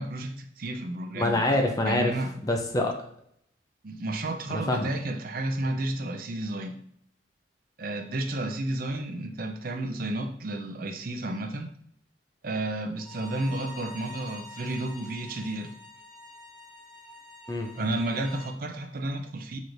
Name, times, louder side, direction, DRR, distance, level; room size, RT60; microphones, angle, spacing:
voice 1, 0.0-1.4 1.9-2.3 3.8-6.8 7.8-11.7 12.4-15.7 17.8-19.6, right 2 dB, 50° right, 4 dB, 0.6 m, -32 dB
voice 2, 1.1-2.2 2.4-2.9 4.5-4.9 17.5-17.9, left 1 dB, 20° left, 3 dB, 0.5 m, -26 dB
Bowed string instrument, 13.0-18.5, left 1 dB, 5° right, 1.3 m, -46 dB
6.7 x 3.1 x 2.6 m, 0.68 s
head